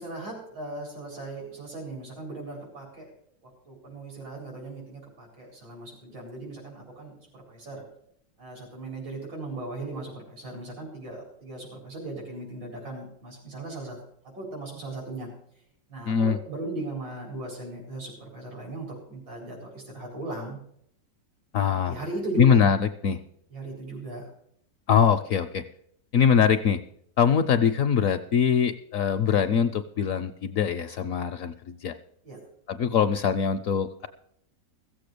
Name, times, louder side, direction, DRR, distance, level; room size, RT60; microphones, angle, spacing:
voice 1, 0.0-3.1 3.4-7.8 8.4-14.0 14.3-15.3 15.9-20.6 21.8-22.6 23.5-24.2 32.2-32.4, right 2 dB, 90° right, -2 dB, 4.8 m, -38 dB
voice 2, 16.1-16.4 21.5-22.0 22.4-23.2 24.9-25.6 26.1-26.8 27.2-31.9 32.7-34.1, left 7 dB, 65° left, 9 dB, 0.9 m, -23 dB
15.5 x 7.7 x 6.7 m, 0.68 s
omnidirectional pair, 1.9 m